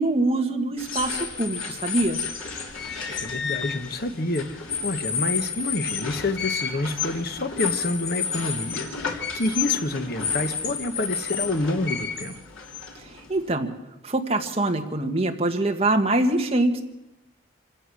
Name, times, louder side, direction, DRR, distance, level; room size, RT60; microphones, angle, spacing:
voice 1, 0.0-2.2 12.9-13.7 14.0-16.8, right 2 dB, 30° right, 4 dB, 1.7 m, -24 dB
sound 1, 0.8-13.5, left 6 dB, 85° left, 3.2 m, -31 dB
voice 2, 3.1-12.4, left 2 dB, 50° left, 9 dB, 1.1 m, -28 dB
26.5 x 16.5 x 6.4 m, 0.95 s
head